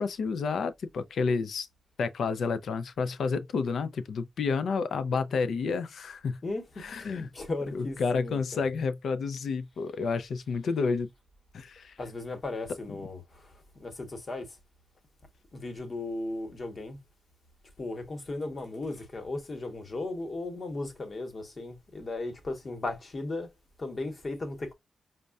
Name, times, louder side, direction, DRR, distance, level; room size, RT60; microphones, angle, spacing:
voice 1, 0.0-1.7 2.0-6.4 6.8-7.3 7.7-11.1 11.5-12.0, left 5 dB, 70° left, 0.4 m, -30 dB
voice 2, 6.4-8.7 12.0-14.6 15.5-17.0 17.8-23.5 23.8-24.7, left 2 dB, 40° left, 1.0 m, -36 dB
5.2 x 2.1 x 2.3 m
cardioid pair, 100°, 0 cm